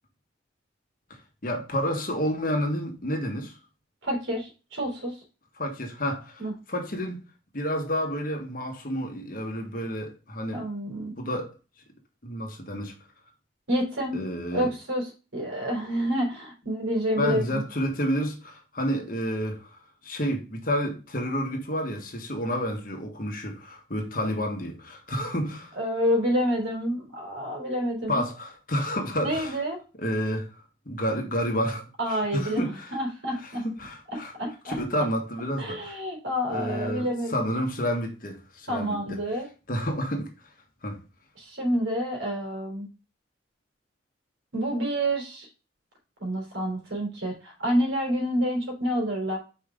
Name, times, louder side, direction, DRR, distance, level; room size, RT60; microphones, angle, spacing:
voice 1, 1.4-3.6 5.6-7.2 7.5-10.6 11.2-11.5 12.2-12.9 14.1-14.7 17.2-25.7 28.1-29.6 30.0-30.5 30.8-31.8 32.1-32.9 33.6-34.3 34.6-36.0 36.5-39.2 39.7-40.3 40.8-41.0, equal, 45° left, 1.5 m, -30 dB
voice 2, 4.0-5.1 6.4-6.5 10.5-11.1 13.7-14.2 14.5-17.6 25.8-28.2 29.2-29.8 32.0-33.6 34.4-34.8 35.6-37.4 38.7-39.4 41.4-42.9 44.5-45.5 46.2-49.4, equal, 85° right, 3.6 m, -28 dB
5.3 x 5.2 x 3.7 m
head